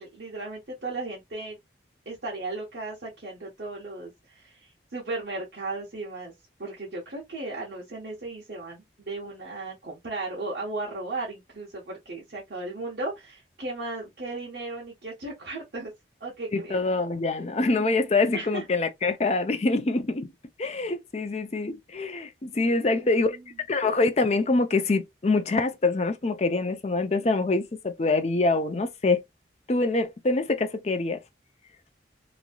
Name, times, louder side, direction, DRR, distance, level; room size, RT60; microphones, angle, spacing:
voice 1, 0.0-1.6 2.1-6.3 6.6-15.9 16.2-16.8 18.3-18.6 22.8-23.4, right 2 dB, 65° right, 1.1 m, -36 dB
voice 2, 16.5-20.3 20.6-23.4 23.7-29.2 29.7-31.2, left 3 dB, 35° left, 0.5 m, -25 dB
3.0 x 2.6 x 2.2 m
head